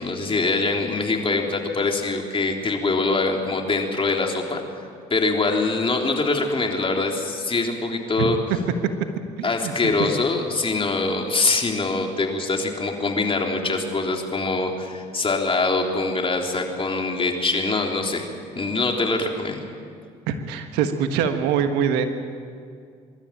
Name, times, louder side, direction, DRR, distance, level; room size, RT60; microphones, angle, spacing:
voice 1, 0.0-4.6 5.1-8.4 9.4-18.3 18.5-19.6, left 3 dB, 35° left, 2 dB, 3.5 m, -23 dB
voice 2, 9.4-9.7 20.3-22.1, right 7 dB, 85° right, 7 dB, 1.5 m, -23 dB
24.5 x 12.5 x 8.8 m, 2.3 s
supercardioid pair, 65°, 17 cm